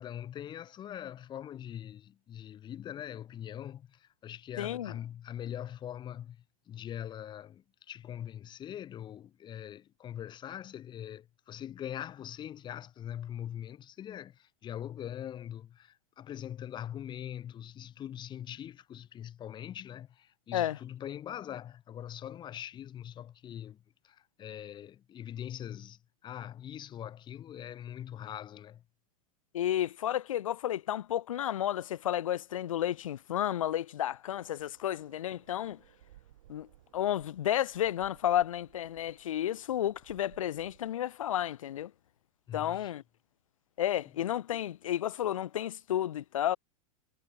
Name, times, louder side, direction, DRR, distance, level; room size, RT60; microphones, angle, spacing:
voice 1, 0.0-6.4 6.7-28.8 42.5-42.9, left 10 dB, 25° left, 1.5 m, -42 dB
voice 2, 4.6-4.9 20.5-20.8 29.5-35.8 36.5-36.7 36.9-41.9 42.5-43.0 43.8-46.6, left 11 dB, 60° left, 0.9 m, -32 dB
sound 1, 34.6-41.0, right 14 dB, 55° right, 6.0 m, -61 dB
figure-of-eight pair, 95°, 19 cm